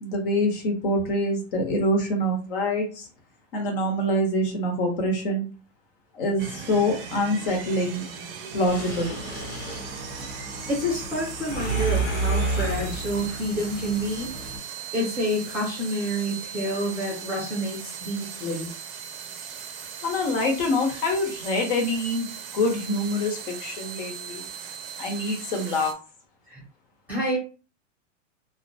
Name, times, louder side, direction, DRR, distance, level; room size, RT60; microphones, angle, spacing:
voice 1, 0.0-3.1 3.5-5.5 6.1-8.0 8.5-9.1 20.0-22.3 22.5-24.4 25.0-25.9, left 1 dB, 45° left, 2 dB, 0.8 m, -25 dB
sound 1, 6.4-25.9, right 7 dB, 50° right, 0.5 m, -39 dB
Mechanisms, 8.7-14.6, right 3 dB, 85° left, 0.9 m, -30 dB
voice 2, 10.7-14.3 14.9-18.7 26.5-26.6 27.1-27.4, equal, 5° right, -6 dB, 0.6 m, -28 dB
2.2 x 2.1 x 2.7 m, 0.36 s
supercardioid pair, 165°, 37 cm